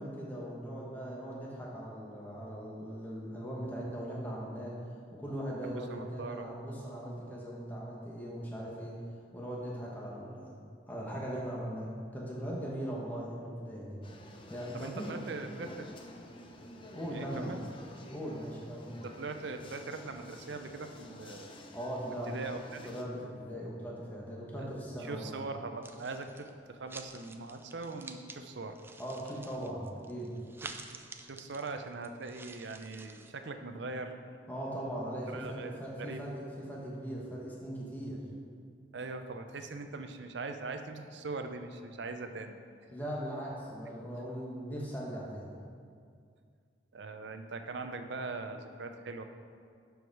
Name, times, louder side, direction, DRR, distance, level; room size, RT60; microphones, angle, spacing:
voice 1, 0.0-4.8 5.1-9.0 9.3-10.6 10.9-14.0 14.5-15.3 16.9-17.6 18.1-19.0 21.7-22.3 22.8-25.3 29.0-30.3 34.5-38.2 42.9-45.5, equal, 10° left, -5 dB, 1.1 m, -39 dB
voice 2, 5.6-6.5 14.7-15.9 17.1-17.6 18.9-21.7 22.3-22.8 24.6-28.8 30.6-30.9 31.2-34.3 35.3-36.2 38.9-42.6 46.9-49.2, right 3 dB, 70° right, 7 dB, 0.6 m, -41 dB
sound 1, 14.0-23.0, left 1 dB, 30° left, 0.6 m, -51 dB
sound 2, 25.8-26.5 26.9-28.4 28.7-33.3, right 3 dB, 10° right, 0.3 m, -49 dB
11.5 x 4.8 x 4.7 m, 2.2 s
head